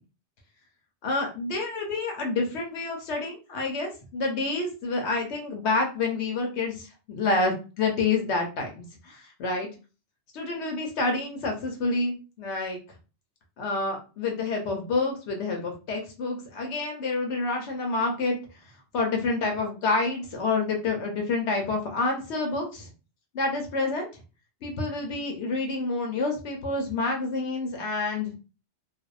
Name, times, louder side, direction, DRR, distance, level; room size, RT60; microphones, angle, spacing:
voice 1, 1.0-9.7 10.3-12.8 13.6-18.4 18.9-22.9 23.3-24.2 24.6-28.3, left 3 dB, 80° left, 2 dB, 0.9 m, -28 dB
2.6 x 2.0 x 2.3 m, 0.33 s
omnidirectional pair, 1.2 m